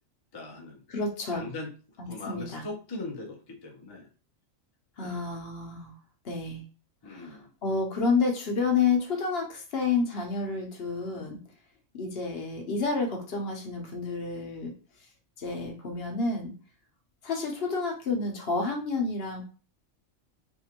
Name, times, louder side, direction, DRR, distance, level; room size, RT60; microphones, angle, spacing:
voice 1, 0.3-0.8 1.3-1.7 2.1-4.1 5.0-5.3 7.0-7.5, left 2 dB, 30° left, -1 dB, 0.4 m, -40 dB
voice 2, 0.9-1.4 2.0-2.6 5.0-5.9 6.2-6.6 7.0-11.4 11.9-14.7 15.4-16.5 17.2-19.4, left 4 dB, 55° left, 2 dB, 0.9 m, -30 dB
3.6 x 2.5 x 2.9 m, 0.36 s
omnidirectional pair, 1.4 m